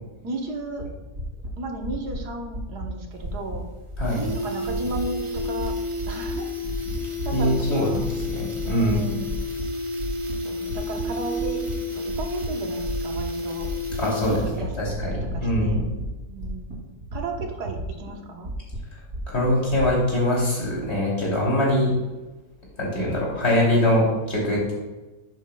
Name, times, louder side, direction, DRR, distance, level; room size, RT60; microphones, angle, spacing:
voice 1, 0.2-0.8 1.6-3.6 4.4-5.7 6.1-6.5 7.2-8.0 8.6-9.3 10.4-11.6 11.9-13.7 14.0-14.7 15.3-15.9 16.3-16.8 17.1-18.5, right 2 dB, 85° right, 2 dB, 1.7 m, -34 dB
sound 1, 0.8-0.9 1.1-1.5 1.8-2.2 2.5-2.9 3.1-3.6 3.9-4.3 4.6-5.0 5.3-5.7 5.9-6.3 6.6-7.7 7.9-8.3 8.6-8.9 9.2-9.6 9.9-11.0 11.4-11.7 12.1-12.5 12.8-13.2 13.5-14.0 14.2-16.1 16.4-16.7 17.0-18.1 18.4-19.9, equal, 60° right, 3.3 m, -33 dB
sound 2, 3.1-3.2 3.5-3.6 3.9-14.7 15.0-15.1, left 1 dB, 30° right, 0.7 m, -31 dB
voice 2, 7.3-9.1 14.0-15.9 19.3-21.9 22.8-24.7, left 1 dB, 40° left, -4 dB, 3.2 m, -23 dB
10.0 x 8.4 x 2.3 m, 1.1 s
omnidirectional pair, 1.7 m